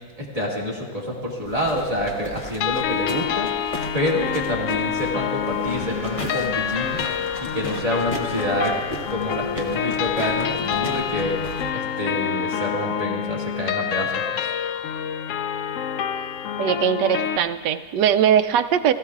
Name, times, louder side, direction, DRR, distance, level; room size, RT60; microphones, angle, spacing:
voice 1, 0.2-3.5 3.9-7.0 7.4-8.7 9.1-11.4 11.7-14.5, left 1 dB, 20° right, -4 dB, 2.3 m, -27 dB
sound 1, 1.4-11.7, left 1 dB, 35° left, 0.5 m, -37 dB
sound 2, 2.6-17.4, left 8 dB, 80° left, 0.7 m, -27 dB
sound 3, 5.7-12.7, equal, 55° left, 4.3 m, -43 dB
voice 2, 16.6-18.9, right 9 dB, 80° right, 11 dB, 1.2 m, -20 dB
20.5 x 14.5 x 2.4 m, 1.5 s
omnidirectional pair, 1.9 m